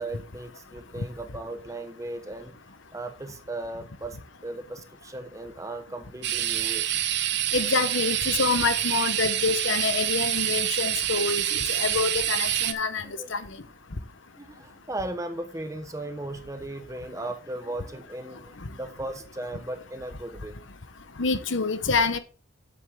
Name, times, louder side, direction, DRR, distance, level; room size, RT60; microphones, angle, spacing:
voice 1, 0.0-2.6 2.9-6.9 13.0-13.5 14.4-20.6, right 2 dB, 15° right, 1.1 m, -37 dB
sound 1, 6.2-12.7, right 11 dB, 60° right, 0.9 m, -27 dB
voice 2, 7.5-13.0 13.3-13.4 21.2-22.2, left 4 dB, 75° left, 1.0 m, -26 dB
9.9 x 7.7 x 3.7 m
head